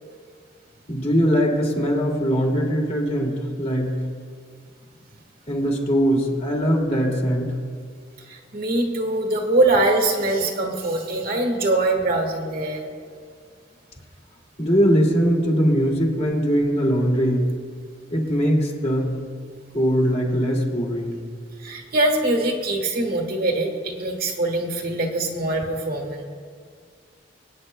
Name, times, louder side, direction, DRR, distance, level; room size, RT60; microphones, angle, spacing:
voice 1, 0.9-3.9 5.5-7.5 14.6-17.5 18.1-19.2 19.7-21.2, equal, 35° left, -1 dB, 2.3 m, -21 dB
voice 2, 8.3-12.8 21.6-26.2, right 2 dB, 55° right, 2 dB, 1.6 m, -23 dB
26.0 x 9.2 x 2.2 m, 2.1 s
head